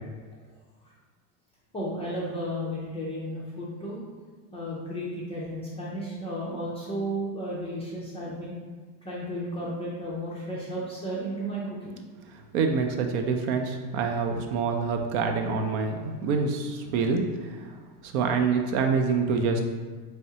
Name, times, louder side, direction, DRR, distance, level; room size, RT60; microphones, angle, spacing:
voice 1, 1.7-4.0 4.5-8.5 9.0-12.0, equal, 15° left, -6 dB, 0.4 m, -33 dB
voice 2, 12.5-17.2 18.0-19.6, right 5 dB, 65° right, 5 dB, 0.6 m, -26 dB
3.5 x 3.2 x 2.8 m, 1.4 s
supercardioid pair, 120°, 49 cm